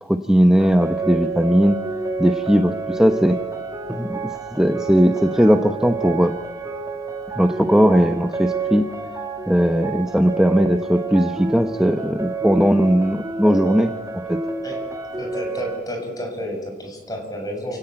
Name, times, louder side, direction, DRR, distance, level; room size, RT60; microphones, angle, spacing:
voice 1, 0.0-1.8 2.2-3.4 3.9-6.3 7.4-8.9 9.5-13.9 14.3-14.4, equal, 5° right, 6 dB, 1.0 m, -18 dB
sound 1, 0.6-15.8, right 4 dB, 20° right, 2.7 m, -29 dB
voice 2, 15.2-17.8, equal, 20° left, 2 dB, 6.9 m, -31 dB
29.0 x 17.5 x 9.1 m, 1.3 s
head